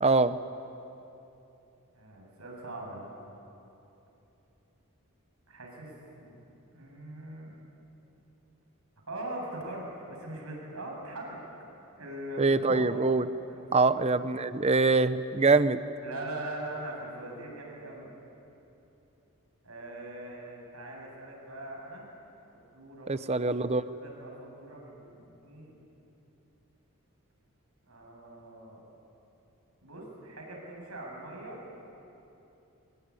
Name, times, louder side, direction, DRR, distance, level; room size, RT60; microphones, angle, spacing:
voice 1, 0.0-0.4 12.4-13.3 13.7-15.8 23.1-23.8, right 3 dB, 30° right, 13 dB, 0.7 m, -24 dB
voice 2, 1.9-3.1 5.5-6.3 6.7-7.5 9.1-11.4 12.0-12.9 13.5-14.0 16.0-18.1 19.6-22.1 22.5-23.6 23.9-25.7 27.9-28.8 29.8-31.6, right 1 dB, 80° right, -1 dB, 7.6 m, -41 dB
23.5 x 22.0 x 9.8 m, 2.9 s
head